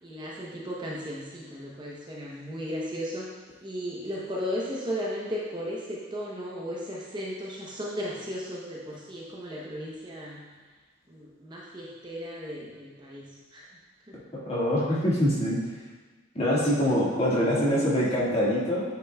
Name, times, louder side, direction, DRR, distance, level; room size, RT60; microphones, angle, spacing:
voice 1, 0.0-3.3 3.6-10.4 11.1-13.3 13.5-13.7 14.1-14.2, equal, 25° right, -4 dB, 0.7 m, -35 dB
voice 2, 14.3-15.6 16.3-18.8, equal, 30° left, -7 dB, 1.7 m, -24 dB
8.1 x 6.7 x 2.3 m, 1.3 s
head